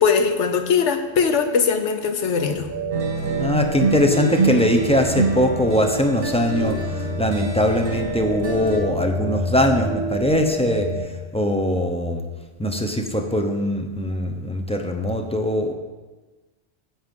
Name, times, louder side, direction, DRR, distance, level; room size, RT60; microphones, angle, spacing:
voice 1, 0.0-2.7, left 6 dB, 85° left, 7 dB, 1.2 m, -20 dB
sound 1, 2.5-11.0, right 1 dB, 30° right, 2.8 m, -29 dB
sound 2, 2.9-8.8, right 4 dB, 45° right, 1.9 m, -27 dB
voice 2, 3.4-6.8 7.2-10.9 11.3-12.2 12.6-15.7, left 1 dB, 5° left, 4 dB, 0.7 m, -21 dB
9.4 x 7.9 x 5.4 m, 1.2 s
omnidirectional pair, 1.2 m